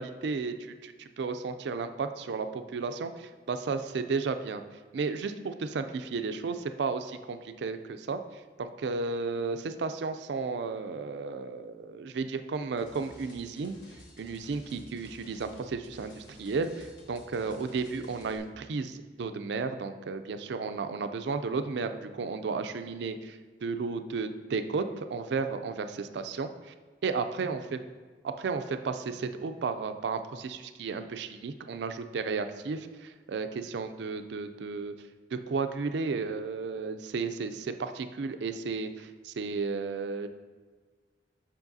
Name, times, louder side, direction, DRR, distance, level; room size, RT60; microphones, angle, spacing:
voice 1, 0.0-4.6 4.9-13.8 14.2-26.7 27.0-27.6 28.2-34.9 35.3-40.3, right 4 dB, 65° right, 9 dB, 0.4 m, -33 dB
sound 1, 12.8-18.4, left 1 dB, 75° left, 1.2 m, -53 dB
7.1 x 5.6 x 2.6 m, 1.4 s
head